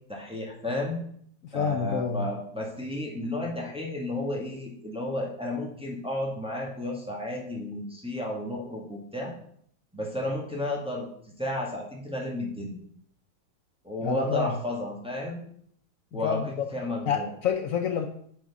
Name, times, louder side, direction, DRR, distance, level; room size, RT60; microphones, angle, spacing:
voice 1, 0.1-1.0 1.5-9.3 9.9-11.1 11.4-12.8 13.8-15.4 16.1-17.3, left 1 dB, 5° right, -2 dB, 1.4 m, -32 dB
voice 2, 1.4-2.2 14.0-14.5 16.1-16.7 17.1-18.1, left 7 dB, 85° left, 5 dB, 0.7 m, -28 dB
6.0 x 5.1 x 6.0 m, 0.65 s
omnidirectional pair, 2.2 m